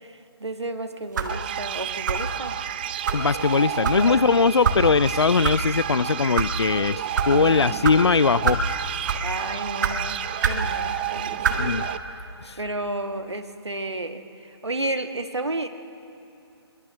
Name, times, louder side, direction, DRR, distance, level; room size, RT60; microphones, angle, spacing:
voice 1, 0.0-2.6 3.9-4.2 7.3-8.1 9.2-11.8 12.6-15.7, right 2 dB, 75° right, 7 dB, 1.6 m, -32 dB
sound 1, 1.1-1.4 2.1-2.3 3.1-3.2 3.8-4.0 4.6-4.8 5.4-5.6 6.2-6.5 7.1-7.3 7.8-8.0 8.4-8.7 9.0-9.3 9.8-10.0 10.4-10.6 11.4-11.6, right 5 dB, 45° right, 1.7 m, -24 dB
sound 2, 1.3-12.0, right 11 dB, 20° right, 0.5 m, -31 dB
voice 2, 3.1-7.0 7.3-8.7 11.6-11.9 12.4-12.6, left 5 dB, 70° left, 21 dB, 0.5 m, -20 dB
22.5 x 21.5 x 6.4 m, 2.7 s
figure-of-eight pair, 140°, 14 cm